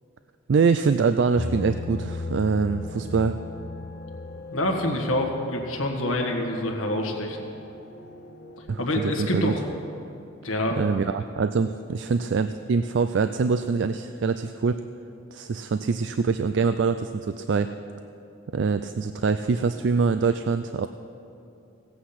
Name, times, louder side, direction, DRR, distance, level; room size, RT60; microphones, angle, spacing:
voice 1, 0.5-3.4 8.7-9.5 10.8-14.8 15.3-17.7 18.5-20.9, right 5 dB, 60° right, 10 dB, 0.3 m, -24 dB
sound 1, 1.4-9.2, left 3 dB, 50° left, 1.0 m, -38 dB
voice 2, 4.5-7.4 8.8-9.6 10.4-10.8, left 1 dB, 85° left, 1 dB, 1.7 m, -26 dB
17.0 x 8.6 x 5.8 m, 2.7 s
head